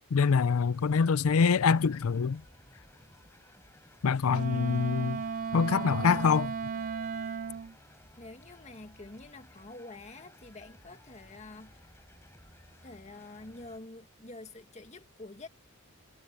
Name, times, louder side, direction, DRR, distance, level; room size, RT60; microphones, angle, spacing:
voice 1, 0.1-2.4 4.0-5.2 5.5-6.5, left 5 dB, 75° left, 0.5 m, -25 dB
sound 1, 0.7-13.8, left 1 dB, 10° left, 6.1 m, -57 dB
Wind instrument woodwind instrument, 4.3-7.7, right 6 dB, 40° right, 0.4 m, -35 dB
voice 2, 8.2-11.9 12.8-15.5, left 2 dB, 30° left, 1.9 m, -47 dB
head